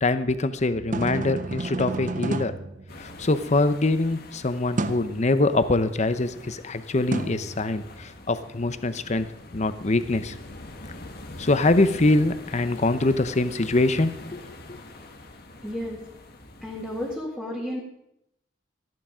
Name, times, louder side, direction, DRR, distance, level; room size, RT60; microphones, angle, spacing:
voice 1, 0.0-2.6 3.0-9.3 9.5-10.3 11.4-14.4 14.7-14.8, left 2 dB, 35° left, 12 dB, 0.7 m, -24 dB
sound 1, 0.7-3.5 4.8-5.2 7.1-8.2, right 3 dB, 40° right, 0.6 m, -31 dB
sound 2, 2.9-17.2, left 2 dB, 55° left, 1.5 m, -44 dB
voice 2, 15.6-16.0 16.6-17.8, left 1 dB, 5° left, -5 dB, 1.9 m, -32 dB
14.0 x 11.0 x 5.0 m, 0.80 s
head